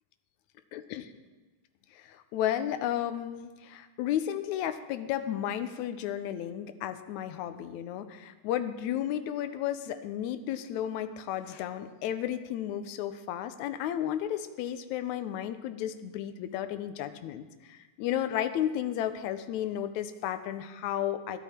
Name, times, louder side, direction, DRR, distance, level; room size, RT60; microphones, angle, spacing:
voice 1, 0.7-1.1 1.9-21.4, left 11 dB, 80° left, 10 dB, 2.0 m, -33 dB
12.5 x 12.0 x 4.4 m, 1.3 s
omnidirectional pair, 3.4 m